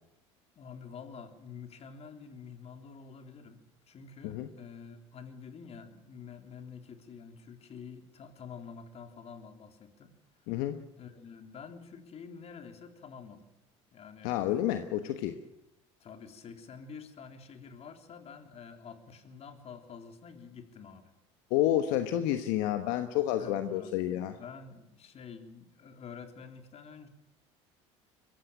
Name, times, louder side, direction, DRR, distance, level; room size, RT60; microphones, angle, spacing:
voice 1, 0.5-10.1 11.0-13.5 13.9-14.3 15.0-15.4 16.0-21.1 23.3-27.1, left 6 dB, 45° left, 7 dB, 3.4 m, -48 dB
voice 2, 10.5-10.8 14.2-15.3 21.5-24.4, left 12 dB, 75° left, 8 dB, 1.3 m, -29 dB
22.5 x 15.5 x 9.1 m, 0.86 s
hypercardioid pair, 75°, 15 cm